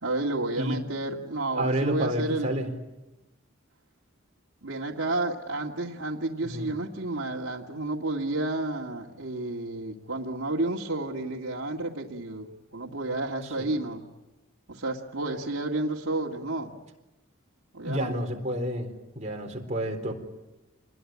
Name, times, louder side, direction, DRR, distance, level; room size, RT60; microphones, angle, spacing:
voice 1, 0.0-2.5 4.6-14.0 14.7-16.7 17.7-18.2, right 2 dB, 70° right, -4 dB, 2.2 m, -31 dB
voice 2, 1.6-2.7 6.4-6.7 13.6-13.7 17.8-18.9 19.2-20.1, right 1 dB, 35° right, 2 dB, 4.1 m, -29 dB
28.0 x 21.0 x 9.5 m, 1.0 s
head